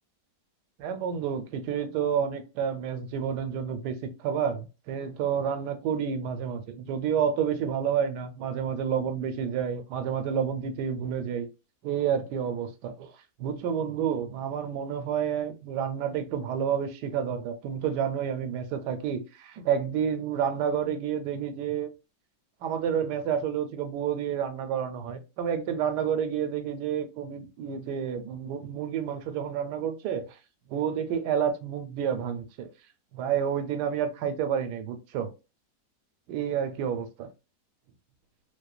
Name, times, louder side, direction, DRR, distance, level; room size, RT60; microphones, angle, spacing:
voice 1, 0.8-11.5 11.8-13.1 13.4-21.9 22.6-30.3 30.7-32.7 33.1-35.3 36.3-37.3, right 8 dB, 85° right, 1.2 m, -29 dB
2.8 x 2.1 x 2.3 m
omnidirectional pair, 1.7 m